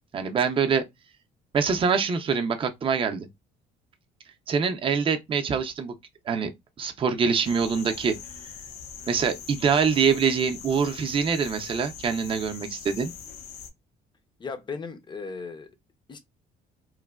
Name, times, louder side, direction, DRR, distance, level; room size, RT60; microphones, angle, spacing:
voice 1, 0.1-0.8 1.5-3.3 4.5-5.9 6.3-6.5 6.8-8.2 9.1-13.1, right 6 dB, 30° right, 0.5 m, -24 dB
sound 1, 7.4-13.7, left 7 dB, 80° left, 0.6 m, -42 dB
voice 2, 14.4-15.7 16.1-16.2, left 4 dB, 30° left, 0.6 m, -36 dB
3.0 x 2.1 x 2.3 m
cardioid pair, 110°, 17 cm